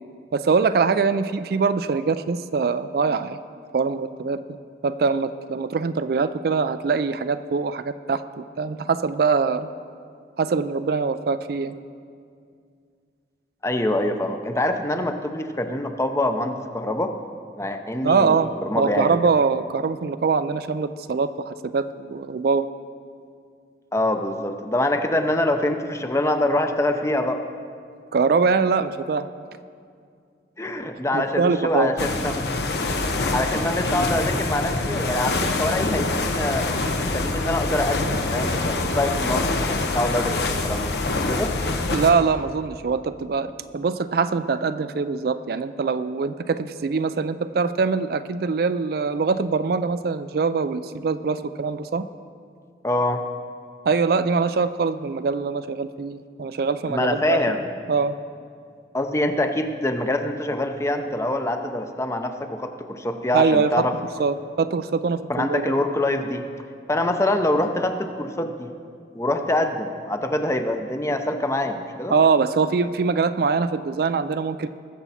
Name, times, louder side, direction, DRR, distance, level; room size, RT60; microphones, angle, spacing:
voice 1, 0.3-3.4 3.7-4.4 4.8-9.7 10.4-11.7 18.0-22.7 28.1-29.3 31.1-32.0 41.9-52.0 53.8-57.4 57.9-58.2 63.3-63.7 64.2-65.8 72.1-74.7, right 5 dB, 60° right, 12 dB, 0.4 m, -23 dB
voice 2, 13.6-17.1 17.6-19.2 23.9-27.4 30.6-32.4 33.0-36.7 37.1-41.0 41.3-41.5 52.8-53.2 56.9-57.7 58.9-63.9 65.3-66.4 66.9-68.7 69.1-72.1, left 1 dB, 15° left, 6 dB, 0.6 m, -25 dB
sound 1, 32.0-42.1, left 2 dB, 70° left, 0.9 m, -25 dB
21.0 x 7.1 x 4.2 m, 2.2 s
head